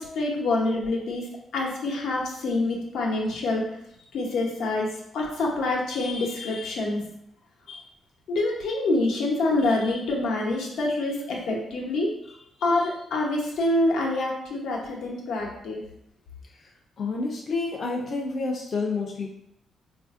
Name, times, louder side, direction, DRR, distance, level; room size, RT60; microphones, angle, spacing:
voice 1, 0.0-3.8 4.1-7.0 7.7-7.8 8.3-12.1 12.6-15.8, left 2 dB, 90° left, -1 dB, 0.7 m, -26 dB
voice 2, 17.0-19.3, left 3 dB, 35° left, 0 dB, 0.3 m, -29 dB
4.0 x 2.5 x 2.4 m, 0.75 s
wide cardioid pair, 165°, 0 cm